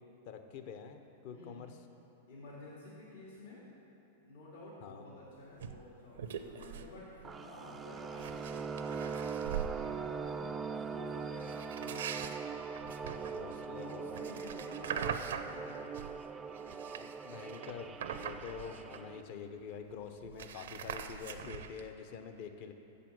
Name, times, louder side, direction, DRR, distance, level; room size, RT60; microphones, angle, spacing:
voice 1, 0.2-1.8 4.8-5.1 13.3-14.0 16.9-22.7, left 6 dB, 55° left, 7 dB, 0.8 m, -46 dB
voice 2, 1.3-1.6 2.3-3.6 4.2-9.3 9.7-12.2 13.4-15.0 15.3-16.2, left 2 dB, 80° left, -6 dB, 2.5 m, -52 dB
sound 1, 5.6-5.8 6.1-6.9 7.2-7.4 8.0-9.8 11.4-16.2 16.5-19.3 19.6-19.7 19.9-21.9, right 8 dB, 80° right, 0.5 m, -42 dB
sound 2, 7.2-19.2, right 5 dB, 20° right, 0.3 m, -41 dB
7.5 x 6.8 x 7.8 m, 3.0 s
hypercardioid pair, 125°, 0 cm